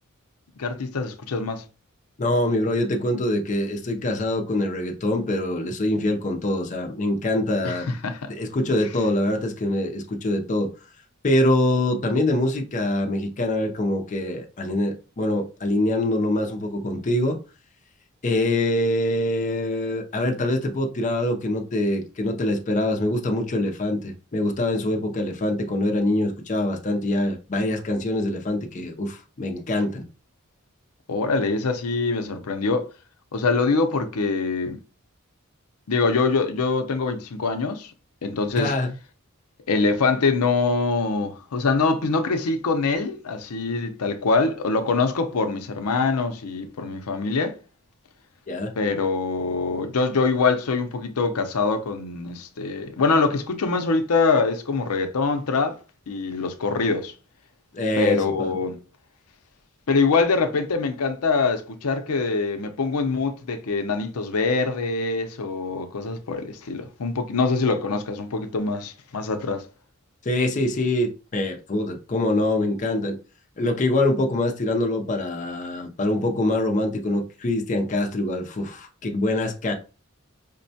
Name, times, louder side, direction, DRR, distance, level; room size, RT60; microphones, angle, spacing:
voice 1, 0.6-1.6 7.6-8.3 31.1-32.9 33.3-34.8 35.9-37.9 38.2-38.7 39.7-47.5 48.8-55.8 56.1-57.1 58.0-58.8 59.9-69.6, left 4 dB, 90° left, 0.6 m, -24 dB
voice 2, 2.2-7.9 8.3-10.7 11.2-17.4 18.2-30.1 38.6-38.9 48.5-48.7 57.7-58.5 70.2-73.2 73.6-79.7, left 1 dB, 35° left, 0.5 m, -24 dB
5.2 x 2.1 x 2.7 m
head